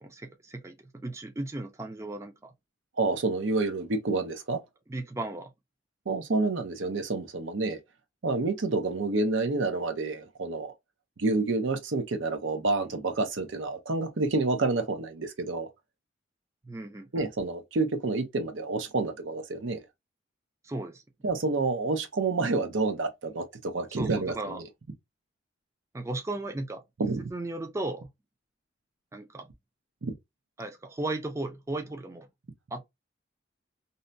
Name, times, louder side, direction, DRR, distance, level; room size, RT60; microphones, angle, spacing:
voice 1, 0.0-2.5 4.9-5.5 16.6-17.3 20.6-21.0 23.9-24.6 25.9-28.1 29.1-29.5 30.6-32.3 32.7-32.8, right 2 dB, 15° right, 0.4 m, -36 dB
voice 2, 3.0-4.6 6.1-7.8 8.2-10.7 11.2-15.7 17.1-19.8 21.2-24.7 27.0-27.3 30.0-30.1, right 3 dB, 75° right, 0.7 m, -28 dB
2.7 x 2.1 x 2.5 m
head